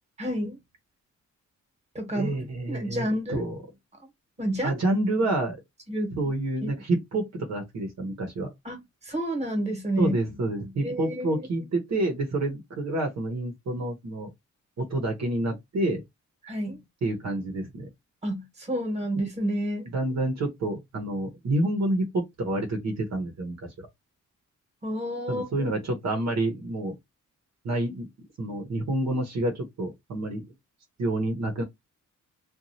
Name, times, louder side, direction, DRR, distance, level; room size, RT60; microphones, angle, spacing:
voice 1, 0.2-0.6 1.9-3.5 4.4-4.8 5.9-6.3 6.6-6.7 8.6-10.1 10.8-11.4 16.4-16.8 18.2-19.9 24.8-25.7, right 1 dB, 20° right, 1.2 m, -30 dB
voice 2, 2.1-3.6 4.6-5.6 6.2-8.5 10.0-14.3 14.8-16.0 17.0-17.9 19.9-23.9 25.3-26.9 27.6-30.4 31.0-31.6, right 2 dB, 60° right, 0.9 m, -28 dB
3.0 x 2.4 x 2.6 m
wide cardioid pair, 165°, 31 cm